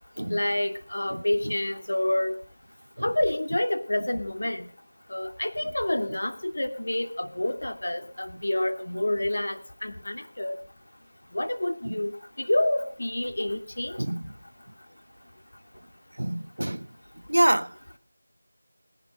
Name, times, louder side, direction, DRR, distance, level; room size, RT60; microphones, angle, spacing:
voice 1, 0.3-2.4 3.0-4.7 5.1-10.6 11.3-12.1 12.4-14.0, left 1 dB, 65° left, 2.6 m, -28 dB
voice 2, 16.2-16.9 17.3-17.7, right 1 dB, 75° right, 0.8 m, -25 dB
18.5 x 11.5 x 6.5 m
figure-of-eight pair, 175°, 0 cm